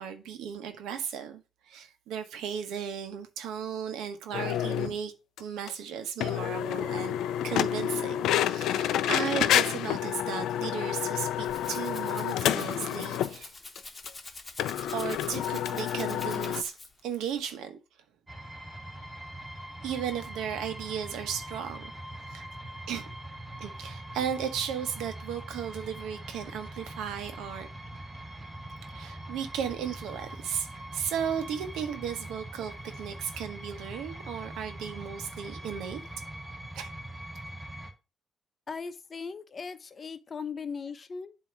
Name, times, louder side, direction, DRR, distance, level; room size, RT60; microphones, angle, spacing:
voice 1, 0.0-5.1 5.4-7.1 7.4-13.5 14.9-16.7 17.0-17.8 19.8-21.9 22.3-22.5 22.9-23.0 23.6-27.7 28.9-30.7 30.9-36.0 36.7-36.9, right 8 dB, 90° right, 1.0 m, -35 dB
sound 1, 4.3-4.9 5.4-5.5 5.7-5.8 6.2-13.4 13.8-13.9 14.1-14.2 14.6-16.6, left 11 dB, 85° left, 0.3 m, -29 dB
Rattle (instrument), 11.2-17.1, left 3 dB, 25° left, 1.1 m, -45 dB
sound 2, 18.3-37.9, right 1 dB, 15° right, 1.5 m, -42 dB
voice 2, 38.7-41.4, left 5 dB, 40° left, 0.7 m, -38 dB
7.8 x 2.8 x 5.8 m
cardioid pair, 90°, 0 cm